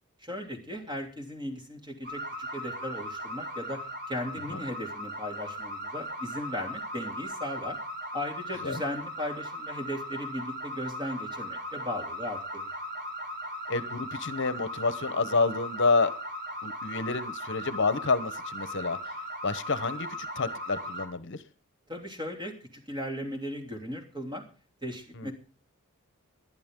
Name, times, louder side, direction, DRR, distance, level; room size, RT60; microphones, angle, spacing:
voice 1, 0.2-3.8 4.1-7.8 8.1-12.7 21.9-24.4 24.8-25.3, left 1 dB, 20° right, 3 dB, 3.0 m, -37 dB
sound 1, 2.0-21.1, equal, 50° right, 3.6 m, -38 dB
voice 2, 13.7-16.1 16.6-19.0 19.4-20.1 20.4-21.4 25.2-25.3, left 4 dB, 55° left, 14 dB, 1.0 m, -28 dB
20.0 x 11.5 x 3.7 m, 0.36 s
head